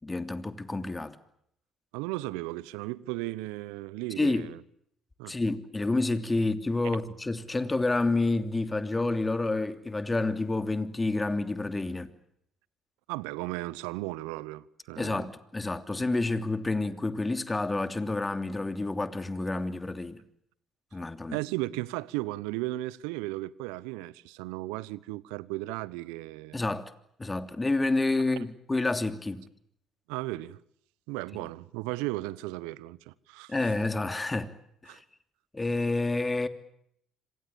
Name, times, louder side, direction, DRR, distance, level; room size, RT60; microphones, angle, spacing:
voice 1, 0.0-1.2 4.2-4.5 5.3-12.1 15.0-20.2 20.9-21.4 26.5-26.9 27.2-29.5 33.5-34.6 34.8-35.0 35.5-36.5, left 2 dB, 20° left, 3.0 m, -29 dB
voice 2, 1.9-4.6 5.2-5.4 13.1-15.3 21.3-26.6 30.1-30.6 31.1-33.5 34.9-35.0, right 19 dB, 75° right, 1.1 m, -35 dB
27.5 x 26.5 x 7.2 m
hypercardioid pair, 55°, 0 cm